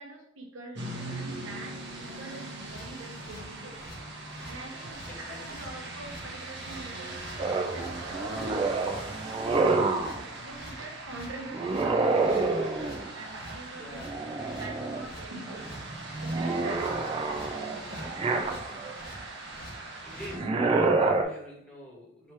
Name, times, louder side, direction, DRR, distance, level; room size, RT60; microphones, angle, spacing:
voice 1, 0.0-4.0 4.4-7.2 7.6-8.8 9.5-15.7 16.2-17.0 18.3-19.1, right 2 dB, 90° right, 1 dB, 0.9 m, -44 dB
sound 1, 0.8-20.4, right 2 dB, 60° right, 0.8 m, -41 dB
sound 2, 2.5-20.4, equal, 45° left, 0.9 m, -48 dB
voice 2, 5.1-5.6 10.2-10.3 13.7-14.0 17.9-18.8 20.0-22.3, equal, 5° left, -6 dB, 1.3 m, -46 dB
sound 3, 7.4-10.2 11.5-13.1 14.0-15.1 15.5-19.0 20.2-21.2, right 3 dB, 25° right, 0.3 m, -28 dB
3.1 x 2.9 x 4.6 m, 0.72 s
head